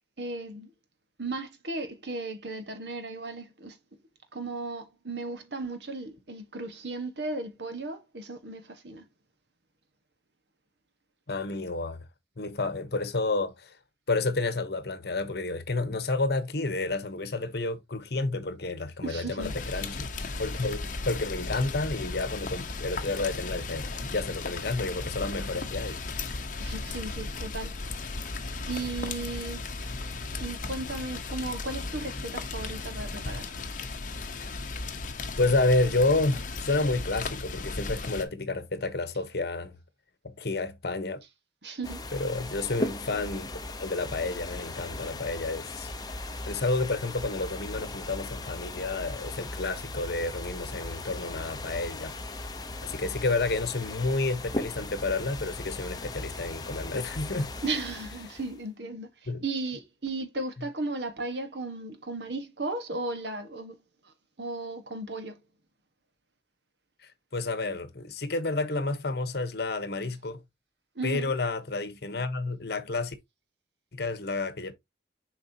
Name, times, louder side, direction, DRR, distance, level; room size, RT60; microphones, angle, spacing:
voice 1, 0.2-0.7 1.2-3.8 4.3-9.0 19.0-19.5 26.6-27.7 28.7-29.7 30.4-33.5 41.6-42.0 57.6-63.8 64.0-65.4 70.9-71.3, right 2 dB, 75° right, 1.4 m, -35 dB
voice 2, 11.3-12.0 12.4-13.8 14.1-20.1 20.4-26.0 35.4-39.7 40.2-41.2 42.1-43.5 43.8-45.9 46.5-52.2 52.8-57.5 59.3-59.4 67.0-70.4 71.0-73.1 73.9-74.7, left 3 dB, 65° left, 1.1 m, -30 dB
Rain, 19.4-38.2, left 3 dB, 50° left, 1.0 m, -36 dB
sound 1, 41.8-58.6, left 2 dB, 20° left, 0.9 m, -38 dB
7.2 x 4.8 x 2.8 m
head